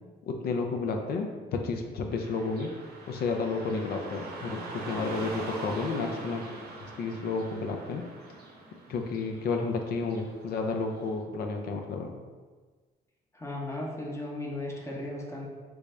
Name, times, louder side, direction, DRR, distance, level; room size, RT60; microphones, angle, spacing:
voice 1, 0.2-2.7 3.1-6.4 6.8-8.0 8.9-12.1, left 4 dB, 65° left, 3 dB, 0.4 m, -31 dB
Car passing by / Traffic noise roadway noise, 2.1-11.1, right 2 dB, 70° right, 0.7 m, -43 dB
voice 2, 13.3-15.5, left 1 dB, 15° left, -2 dB, 0.8 m, -36 dB
3.4 x 2.6 x 3.1 m, 1.4 s
cardioid pair, 100°, 17 cm